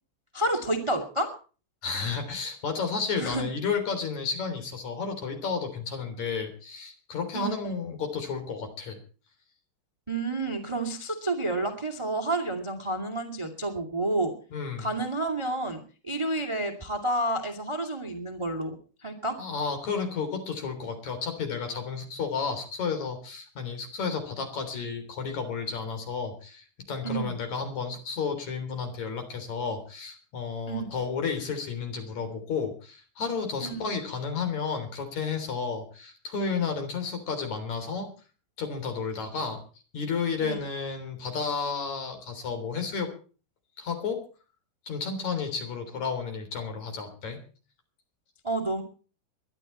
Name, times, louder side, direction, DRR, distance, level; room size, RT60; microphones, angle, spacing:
voice 1, 0.3-1.3 3.2-3.5 7.3-7.8 10.1-14.3 14.8-19.4 27.0-27.4 30.7-30.9 33.6-33.9 40.4-40.6 48.4-48.8, right 2 dB, 45° right, 6 dB, 0.4 m, -30 dB
voice 2, 1.8-9.0 14.5-14.9 19.4-38.1 38.6-39.6 39.9-43.1 43.8-44.2 44.9-47.4, left 5 dB, 40° left, 6 dB, 4.5 m, -32 dB
22.5 x 11.0 x 4.3 m, 0.38 s
omnidirectional pair, 5.3 m